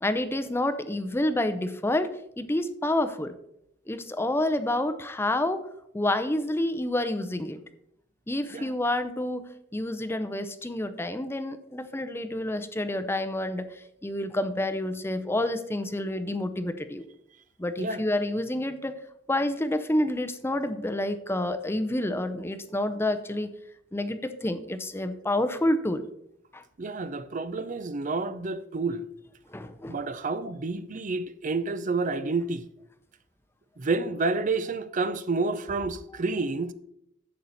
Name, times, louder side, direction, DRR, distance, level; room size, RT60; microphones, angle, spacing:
voice 1, 0.0-3.3 3.9-5.7 5.9-7.6 8.3-9.5 9.7-17.0 17.6-19.0 19.3-23.5 23.9-26.0 26.5-26.6 29.5-30.0, left 1 dB, 15° left, 0.6 m, -28 dB
voice 2, 26.8-29.1 29.9-32.6 33.8-36.7, right 3 dB, 45° right, 0.6 m, -29 dB
11.0 x 7.9 x 4.0 m
head